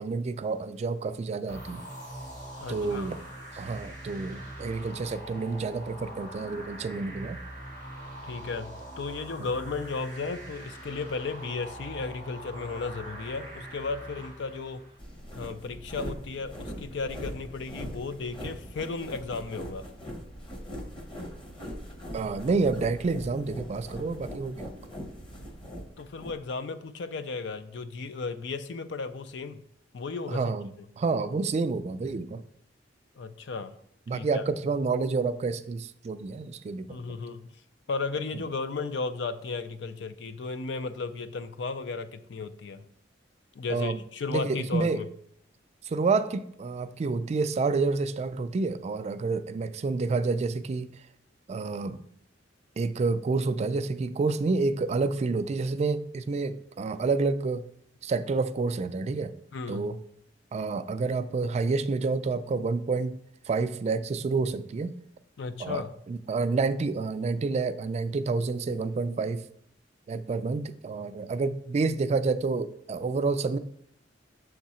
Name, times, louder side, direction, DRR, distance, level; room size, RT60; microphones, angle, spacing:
voice 1, 0.0-1.8 2.7-3.2 3.5-7.4 22.1-24.7 30.3-30.7 31.0-32.4 34.1-37.0 38.3-38.4 43.7-44.0 44.3-45.0 45.8-51.0 51.5-52.0 52.8-57.6 58.0-59.3 59.7-60.0 60.5-65.0 65.6-69.4 70.1-73.6, right 4 dB, 35° right, 12 dB, 0.3 m, -29 dB
sound 1, 1.5-15.0, right 1 dB, 85° left, 2.3 m, -43 dB
voice 2, 2.6-3.1 8.2-14.8 15.3-19.9 26.0-29.6 29.9-30.5 33.2-33.8 34.1-34.4 36.9-37.5 37.9-42.9 43.5-45.1 59.5-60.0 65.4-65.9, left 4 dB, 70° left, 11 dB, 0.5 m, -34 dB
sound 2, 15.0-26.4, equal, 30° left, 1.0 m, -41 dB
6.9 x 3.6 x 4.2 m, 0.70 s
head